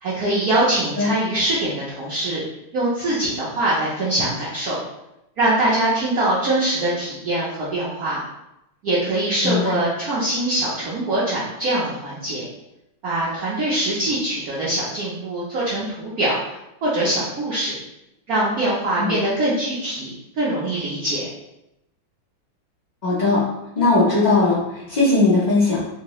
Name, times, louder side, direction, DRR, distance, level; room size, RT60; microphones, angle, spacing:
voice 1, 0.0-2.4 2.7-4.8 5.4-8.2 8.8-12.4 13.0-16.3 16.8-17.7 18.3-21.2, right 1 dB, 65° right, -8 dB, 0.9 m, -23 dB
voice 2, 9.4-9.8 19.0-19.2 23.0-23.4 23.7-25.8, left 3 dB, 40° left, -9 dB, 0.6 m, -19 dB
3.5 x 2.8 x 3.0 m, 0.87 s
omnidirectional pair, 2.4 m